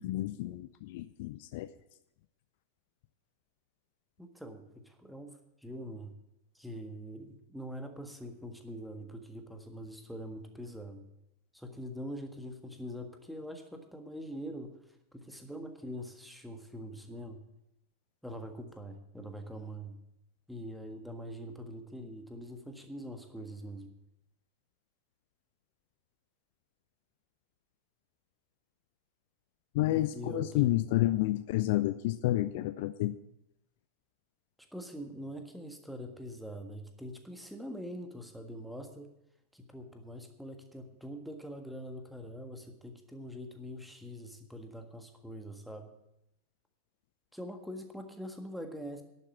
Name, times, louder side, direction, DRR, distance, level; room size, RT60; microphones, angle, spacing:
voice 1, 0.0-1.7 29.7-33.2, left 16 dB, 50° left, 14 dB, 0.4 m, -30 dB
voice 2, 4.2-6.1 6.5-11.1 11.5-17.4 18.2-20.0 20.5-23.9 30.1-30.7 34.7-39.1 39.5-45.9 47.3-49.0, equal, ahead, 5 dB, 1.6 m, -44 dB
11.0 x 7.6 x 8.5 m, 0.85 s
figure-of-eight pair, 90°, 0 cm